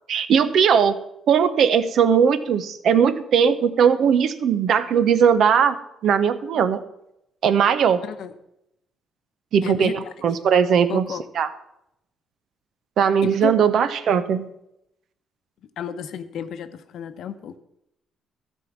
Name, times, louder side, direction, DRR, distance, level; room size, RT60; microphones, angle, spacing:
voice 1, 0.1-1.0 1.3-5.8 6.0-6.8 7.4-8.0 9.5-11.1 11.3-11.5 13.0-14.5, right 7 dB, 70° right, 12 dB, 0.7 m, -19 dB
voice 2, 8.0-8.3 9.6-10.1 10.9-11.2 13.2-13.5 15.8-17.6, left 8 dB, 75° left, 10 dB, 0.8 m, -32 dB
13.0 x 4.5 x 7.2 m, 0.83 s
cardioid pair, 90°, 0 cm